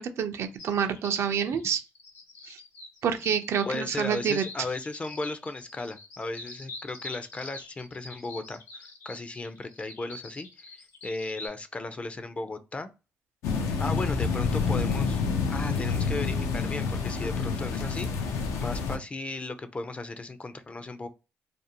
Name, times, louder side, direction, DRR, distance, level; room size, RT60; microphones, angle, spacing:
voice 1, 0.0-1.8 2.5-2.6 3.0-4.4, right 8 dB, 65° right, 0.4 m, -28 dB
sound 1, 0.6-11.5, left 3 dB, 70° left, 0.9 m, -45 dB
voice 2, 3.7-12.9 13.8-15.2 15.5-21.1, left 2 dB, 25° left, 0.4 m, -36 dB
sound 2, 13.4-19.0, left 5 dB, 90° left, 0.5 m, -28 dB
2.5 x 2.0 x 2.7 m
cardioid pair, 90°, 5 cm